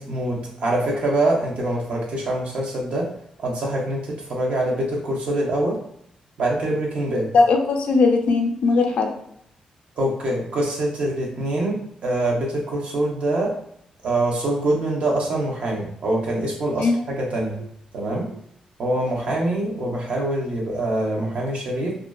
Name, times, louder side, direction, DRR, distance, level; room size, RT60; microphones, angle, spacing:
voice 1, 0.0-3.1 3.4-5.8 6.4-7.3 10.0-11.8 12.0-13.5 14.0-17.6 17.9-18.3 18.8-21.9, right 1 dB, 65° right, -2 dB, 0.7 m, -24 dB
voice 2, 7.3-9.1 16.8-17.1, left 3 dB, 65° left, 3 dB, 0.4 m, -19 dB
2.4 x 2.2 x 2.2 m, 0.71 s
wide cardioid pair, 130°, 2 cm